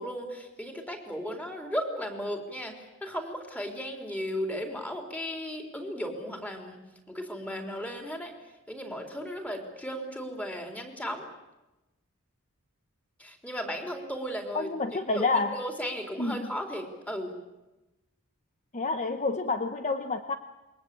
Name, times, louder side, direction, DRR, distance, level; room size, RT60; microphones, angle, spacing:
voice 1, 0.0-6.8 7.1-8.3 8.7-11.2 13.2-14.7 15.1-17.3, equal, 5° left, 3 dB, 4.1 m, -35 dB
voice 2, 14.5-15.6 16.2-16.4 18.7-20.3, left 3 dB, 35° left, 7 dB, 1.1 m, -28 dB
28.0 x 22.5 x 8.6 m, 1.0 s
head